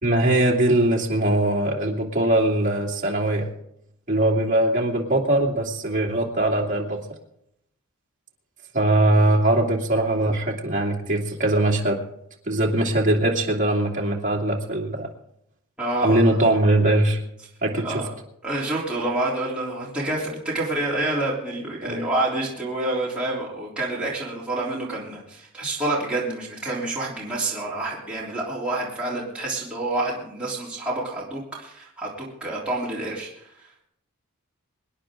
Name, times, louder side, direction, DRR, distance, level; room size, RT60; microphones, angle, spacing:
voice 1, 0.0-3.5 4.1-7.0 8.7-12.0 12.5-15.1 16.0-17.2 17.6-18.0 21.8-22.1, right 1 dB, 35° right, -2 dB, 2.5 m, -21 dB
voice 2, 15.8-16.6 17.7-18.1 18.4-33.7, right 2 dB, 5° right, -7 dB, 3.4 m, -28 dB
25.0 x 10.0 x 3.8 m, 0.75 s
head